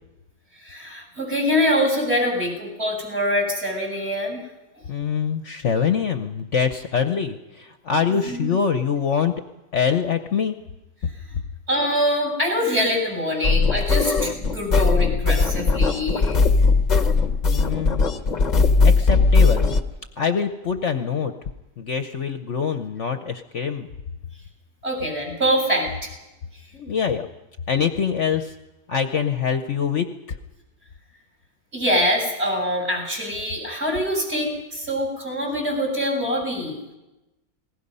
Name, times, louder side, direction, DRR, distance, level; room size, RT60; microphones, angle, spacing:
voice 1, 0.6-4.4 8.1-8.5 11.7-16.4 24.8-25.9 31.7-36.8, equal, 40° right, 2 dB, 7.1 m, -24 dB
voice 2, 4.9-9.3 9.7-10.5 17.4-18.0 18.8-19.7 20.2-21.3 21.8-23.9 26.7-27.3 27.7-28.5 28.9-30.4, left 7 dB, 55° left, 7 dB, 1.1 m, -24 dB
sound 1, 13.4-19.8, left 4 dB, 30° left, 1.0 m, -18 dB
28.0 x 20.0 x 5.5 m, 1.0 s
omnidirectional pair, 1.7 m